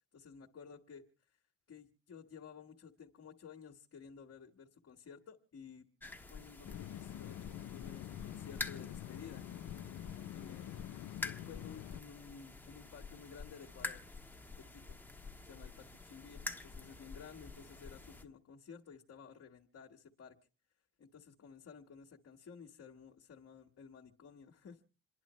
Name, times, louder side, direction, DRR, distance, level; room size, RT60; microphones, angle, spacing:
voice 1, 0.1-1.4 1.7-5.8 6.3-9.5 10.3-10.9 11.2-14.0 14.5-15.0 15.4-20.4 21.0-24.8, left 6 dB, 55° left, 0 dB, 1.6 m, -54 dB
sound 1, 6.0-18.2, left 3 dB, 5° left, 1.4 m, -48 dB
sound 2, 6.6-12.0, left 13 dB, 80° left, 0.6 m, -46 dB
28.0 x 11.0 x 3.1 m, 0.38 s
cardioid pair, 90°, 30 cm